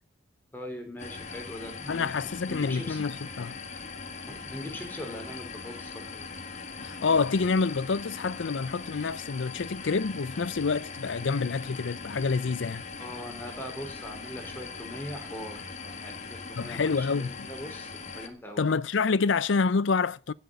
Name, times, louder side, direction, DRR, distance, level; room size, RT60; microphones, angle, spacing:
voice 1, 0.5-2.1 2.5-3.0 4.2-6.3 13.0-18.6, left 1 dB, 10° left, 4.1 m, -41 dB
sound 1, 1.0-18.3, left 4 dB, 35° left, 1.7 m, -41 dB
voice 2, 1.9-3.6 6.8-12.8 16.6-17.5 18.6-20.3, left 4 dB, 80° left, 0.6 m, -27 dB
16.0 x 6.6 x 8.2 m
head